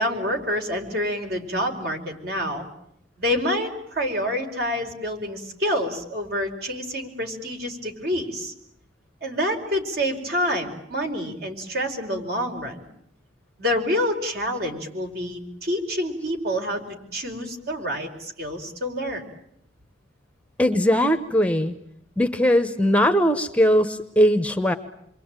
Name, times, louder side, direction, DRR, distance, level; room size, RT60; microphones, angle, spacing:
voice 1, 0.0-2.7 3.2-8.5 9.2-12.9 13.6-16.8 17.1-19.2, equal, 55° right, 4 dB, 4.8 m, -27 dB
voice 2, 20.6-21.8 22.2-24.7, equal, 5° left, 8 dB, 1.0 m, -20 dB
28.0 x 23.0 x 9.0 m, 0.74 s
head